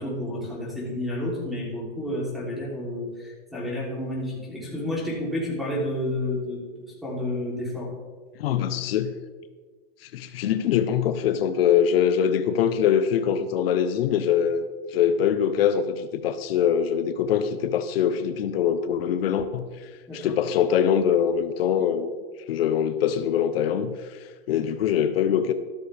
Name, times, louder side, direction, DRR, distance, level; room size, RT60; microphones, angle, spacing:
voice 1, 0.0-7.9 20.1-20.3, left 1 dB, ahead, -5 dB, 3.2 m, -30 dB
voice 2, 8.4-9.1 10.0-22.2 22.5-25.5, left 8 dB, 75° left, 9 dB, 0.9 m, -23 dB
13.0 x 12.5 x 3.4 m, 1.5 s
supercardioid pair, 165°, 30 cm